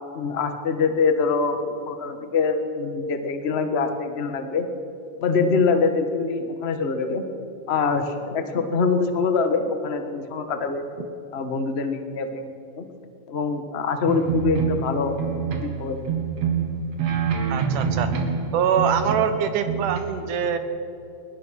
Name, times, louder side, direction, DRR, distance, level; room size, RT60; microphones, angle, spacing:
voice 1, 0.1-4.7 5.2-7.2 7.7-10.8 11.3-12.8 13.3-16.1, left 4 dB, 70° left, 7 dB, 0.6 m, -24 dB
sound 1, 14.1-15.8 16.1-18.5 18.8-19.4 19.6-20.0, right 7 dB, 55° right, 2.9 m, -25 dB
voice 2, 17.5-18.1 18.5-20.6, right 7 dB, 80° right, 8 dB, 2.8 m, -24 dB
22.0 x 20.5 x 6.4 m, 2.7 s
omnidirectional pair, 3.6 m